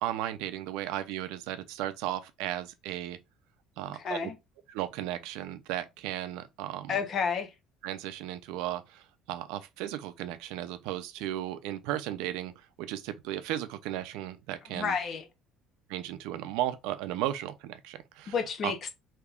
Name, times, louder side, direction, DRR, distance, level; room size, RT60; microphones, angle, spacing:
voice 1, 0.0-3.2 3.8-4.3 4.7-7.0 7.8-15.0 15.9-18.3 18.6-18.7, right 13 dB, 85° right, 0.5 m, -35 dB
voice 2, 4.0-4.4 6.9-7.5 14.7-15.2 18.3-18.9, left 6 dB, 35° left, 0.6 m, -30 dB
3.5 x 2.8 x 2.3 m
cardioid pair, 145°, 0 cm